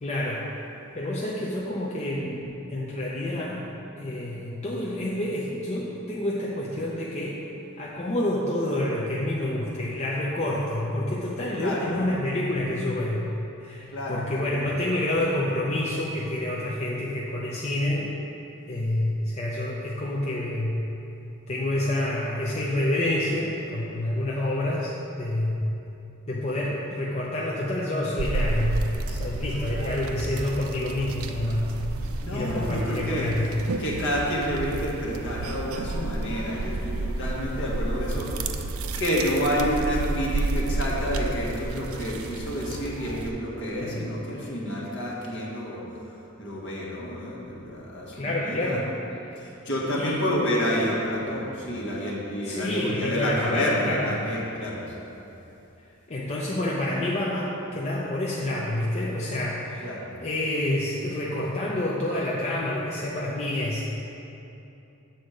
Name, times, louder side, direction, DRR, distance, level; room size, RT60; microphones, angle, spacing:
voice 1, 0.0-0.5 0.9-3.7 4.0-7.4 7.8-13.3 13.6-18.1 18.7-20.8 21.5-25.7 26.3-31.7 32.3-33.5 43.8-44.1 48.1-48.9 49.1-49.3 50.0-50.2 52.4-54.1 56.1-59.9 60.2-63.8, left 1 dB, 30° left, -4 dB, 0.6 m, -28 dB
voice 2, 11.6-11.9 13.9-14.4 32.2-33.3 33.8-38.7 39.0-45.8 46.4-48.8 49.4-54.8 59.8-60.1, equal, 55° left, -5 dB, 1.6 m, -29 dB
sound 1, 28.2-43.3, right 2 dB, 70° right, 0.4 m, -31 dB
7.9 x 4.2 x 6.4 m, 2.9 s
head